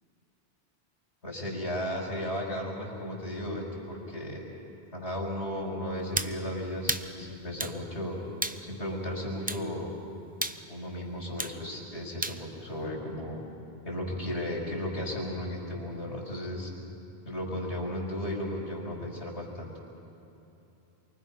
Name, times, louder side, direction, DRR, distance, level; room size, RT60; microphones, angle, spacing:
voice 1, 1.2-4.4 4.9-8.2 8.6-9.9 10.7-13.4 13.8-16.7 17.3-19.8, left 1 dB, 90° left, -2 dB, 5.3 m, -35 dB
sound 1, 6.2-6.4 6.9-7.1 7.6-7.8 8.4-8.6 9.5-9.7 10.4-10.6 11.4-11.6 12.2-12.4, right 1 dB, 10° right, 0.5 m, -31 dB
28.0 x 24.5 x 5.6 m, 2.9 s
omnidirectional pair, 1.1 m